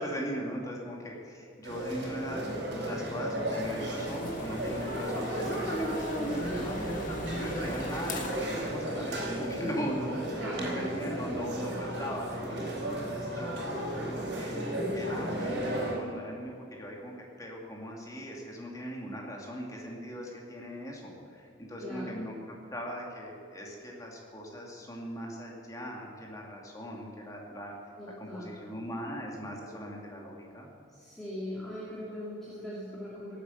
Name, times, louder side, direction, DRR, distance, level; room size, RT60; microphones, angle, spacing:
voice 1, 0.0-2.5 2.8-12.8 13.2-22.3 22.7-27.7 28.2-30.7, equal, 15° left, -1 dB, 2.4 m, -39 dB
sound 1, 1.6-15.9, right 1 dB, 60° right, 4.3 m, -34 dB
sound 2, 3.6-8.6, left 2 dB, 40° left, 1.7 m, -42 dB
voice 2, 6.2-6.7 10.4-11.5 21.8-22.2 28.0-28.6 30.9-33.4, equal, ahead, -8 dB, 2.8 m, -40 dB
18.0 x 8.4 x 8.1 m, 2.5 s
head